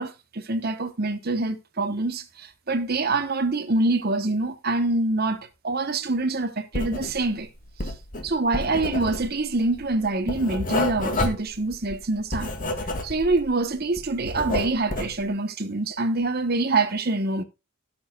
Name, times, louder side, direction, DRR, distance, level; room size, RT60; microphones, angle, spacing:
voice 1, 0.0-7.5 8.2-12.5 13.0-17.4, right 2 dB, 45° right, 1.0 m, -25 dB
Writing, 6.7-7.4 7.7-13.5 13.8-15.2, left 2 dB, 40° left, 2.2 m, -29 dB
17.0 x 7.0 x 2.3 m
head